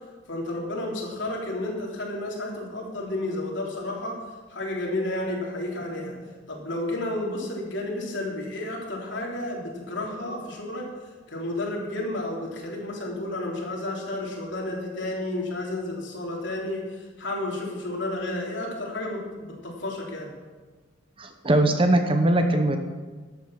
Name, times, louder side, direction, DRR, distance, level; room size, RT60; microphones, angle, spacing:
voice 1, 0.3-4.1 4.5-6.1 6.5-10.8 11.3-20.3, left 1 dB, 70° left, -2 dB, 3.4 m, -31 dB
voice 2, 21.2-22.8, right 1 dB, 25° right, 6 dB, 0.9 m, -21 dB
13.0 x 8.3 x 6.5 m, 1.3 s
head